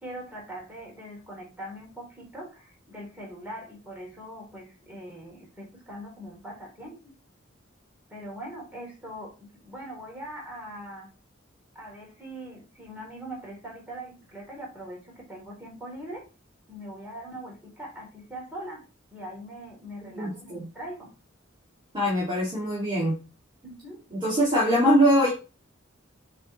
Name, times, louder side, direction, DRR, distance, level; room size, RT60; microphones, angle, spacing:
voice 1, 0.0-7.1 8.1-9.3 9.6-11.1 11.8-16.2 16.7-18.8 19.1-21.1 23.6-24.0, right 1 dB, 10° right, -3 dB, 3.7 m, -41 dB
voice 2, 20.1-20.6 21.9-23.1 24.1-25.3, equal, 25° right, -7 dB, 2.6 m, -22 dB
8.5 x 4.4 x 3.3 m, 0.31 s
head